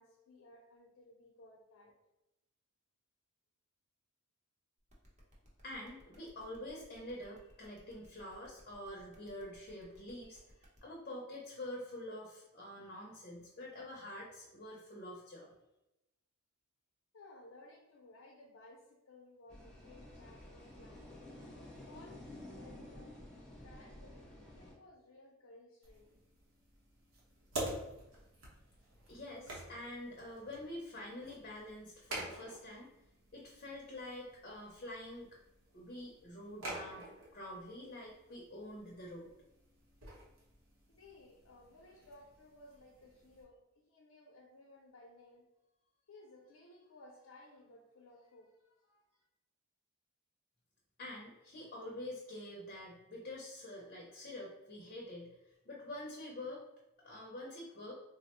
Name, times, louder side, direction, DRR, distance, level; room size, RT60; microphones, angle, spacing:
voice 1, 0.0-1.9 17.1-21.0 21.8-23.1 23.6-26.2 40.9-43.6 43.9-45.5 46.1-49.2, left 2 dB, 85° left, -2 dB, 0.5 m, -59 dB
sound 1, 4.9-10.8, equal, 35° right, 0.8 m, -64 dB
voice 2, 5.6-15.5 29.1-32.9 33.3-35.3 35.7-37.1 37.3-39.3 51.0-55.3 55.6-56.6 57.0-58.0, left 1 dB, 45° left, -2 dB, 0.6 m, -47 dB
sound 2, 19.5-24.7, left 1 dB, 5° left, 0.8 m, -52 dB
sound 3, 25.8-43.4, right 1 dB, 70° right, 0.8 m, -49 dB
3.5 x 2.0 x 2.9 m, 0.95 s
head